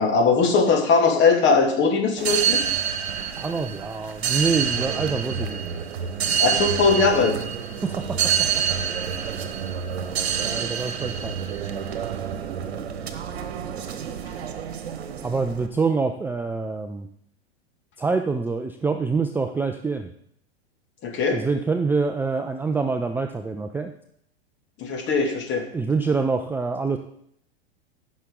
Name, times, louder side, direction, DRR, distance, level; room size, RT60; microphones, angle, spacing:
voice 1, 0.0-2.6 6.4-7.4 21.0-21.4 24.8-25.7, left 4 dB, 35° left, 3 dB, 2.3 m, -20 dB
sound 1, 2.2-15.7, right 8 dB, 70° right, 1.2 m, -27 dB
voice 2, 3.4-5.7 7.8-8.2 10.4-11.4 15.2-17.1 18.0-20.1 21.3-23.9 25.7-27.0, right 4 dB, 5° right, 6 dB, 0.5 m, -25 dB
15.0 x 6.2 x 3.8 m, 0.68 s
hypercardioid pair, 95°, 32 cm